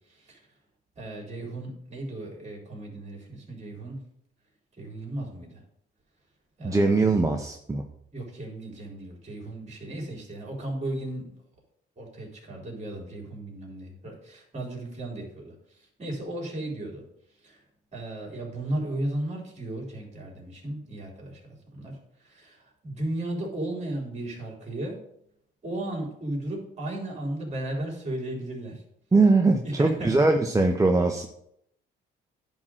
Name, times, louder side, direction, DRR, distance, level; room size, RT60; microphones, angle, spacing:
voice 1, 1.0-4.0 4.8-5.6 6.6-7.0 8.1-11.3 12.0-15.5 16.0-17.0 17.4-17.6 17.9-22.0 22.2-25.0 25.6-28.8 29.6-30.1, right 1 dB, 35° right, -1 dB, 4.1 m, -35 dB
voice 2, 6.6-7.8 29.1-31.3, right 3 dB, 15° right, 3 dB, 0.8 m, -21 dB
10.5 x 3.9 x 6.4 m, 0.73 s
cardioid pair, 90°, 20 cm